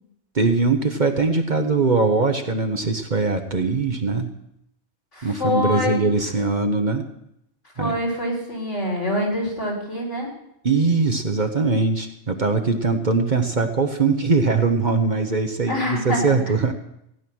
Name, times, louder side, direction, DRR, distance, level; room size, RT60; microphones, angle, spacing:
voice 1, 0.3-4.3 5.2-7.1 7.8-7.9 10.6-16.7, right 4 dB, 40° right, 6 dB, 1.1 m, -21 dB
voice 2, 5.1-6.1 7.8-10.3 15.7-16.2, left 1 dB, 70° left, -2 dB, 4.7 m, -25 dB
16.0 x 10.0 x 6.2 m, 0.79 s
omnidirectional pair, 1.3 m